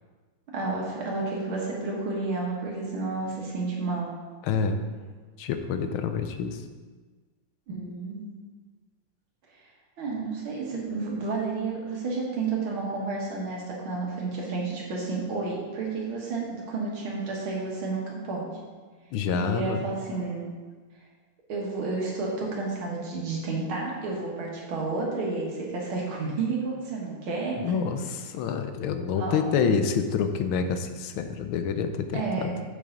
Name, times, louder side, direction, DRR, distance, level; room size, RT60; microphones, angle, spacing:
voice 1, 0.5-4.1 7.7-8.3 10.0-18.5 19.3-20.5 21.5-27.7 29.2-29.8 32.1-32.5, right 3 dB, 80° right, -3 dB, 2.4 m, -31 dB
voice 2, 4.4-4.8 5.4-6.6 19.1-19.8 27.6-32.5, left 6 dB, 85° left, 8 dB, 1.5 m, -27 dB
7.5 x 6.7 x 3.9 m, 1.4 s
omnidirectional pair, 2.2 m